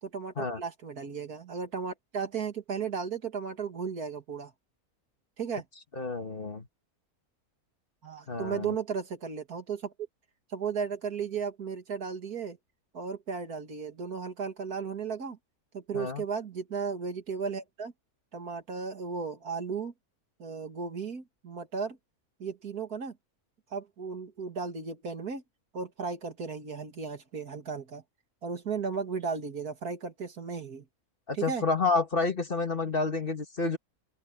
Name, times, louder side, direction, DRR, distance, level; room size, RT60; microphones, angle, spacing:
voice 1, 0.0-4.5 5.4-5.6 8.0-9.9 10.5-12.6 12.9-15.4 15.7-17.9 18.3-19.9 20.4-22.0 22.4-23.2 23.7-25.4 25.7-28.0 28.4-30.8 31.3-31.6, right 5 dB, 80° right, 2.8 m, -35 dB
voice 2, 5.9-6.7 8.3-8.8 15.9-16.2 31.3-33.8, left 3 dB, 40° left, 1.7 m, -29 dB
open air
omnidirectional pair, 1.6 m